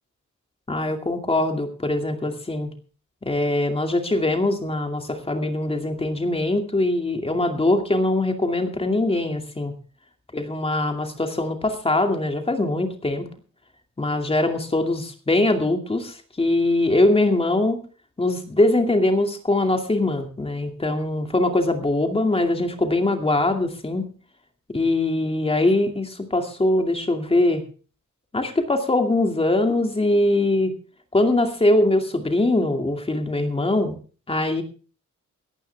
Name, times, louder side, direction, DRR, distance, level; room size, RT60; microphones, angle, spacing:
voice 1, 0.7-2.7 3.2-9.7 10.3-13.3 14.0-17.8 18.2-24.1 24.7-27.6 28.3-30.7 31.1-34.0 34.3-34.6, left 2 dB, 20° left, 5 dB, 2.4 m, -22 dB
17.5 x 14.0 x 3.4 m, 0.37 s
wide cardioid pair, 160°, 31 cm